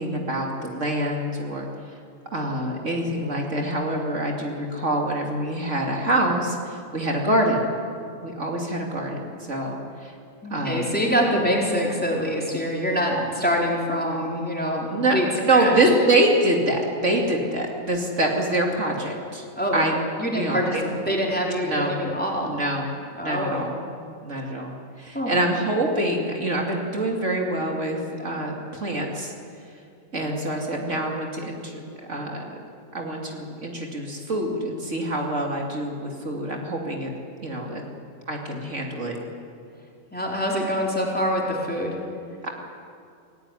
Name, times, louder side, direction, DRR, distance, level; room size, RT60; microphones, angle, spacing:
voice 1, 0.0-1.7 2.3-7.7 8.2-10.1 10.5-11.0 14.9-19.4 19.7-20.0 20.3-20.9 21.6-22.0 22.4-22.9 23.2-23.7 24.2-29.3 30.1-31.8 32.1-32.6 32.9-37.1 37.4-37.8 38.3-39.2 42.4-42.5, right 1 dB, 60° right, 0 dB, 3.0 m, -25 dB
voice 2, 10.4-15.7 19.6-19.8 20.2-22.6 23.2-23.7 25.1-25.4 40.1-41.9, equal, 5° left, -2 dB, 4.4 m, -25 dB
25.5 x 17.5 x 9.9 m, 2.4 s
omnidirectional pair, 1.4 m